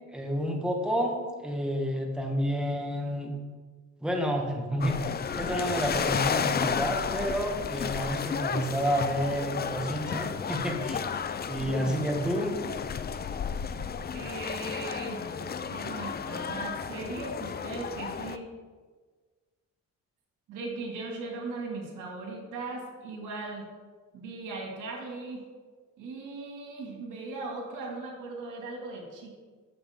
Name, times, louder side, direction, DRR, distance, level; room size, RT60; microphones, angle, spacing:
voice 1, 0.0-3.3 4.0-11.0 11.5-12.5, equal, 5° right, 1 dB, 1.6 m, -30 dB
sound 1, 4.8-18.4, left 6 dB, 35° left, 0.5 m, -32 dB
voice 2, 14.1-18.4 20.5-23.7 24.1-25.4 26.0-29.4, right 3 dB, 85° right, 0 dB, 2.3 m, -38 dB
11.0 x 7.1 x 3.7 m, 1.5 s
cardioid pair, 90°, 30 cm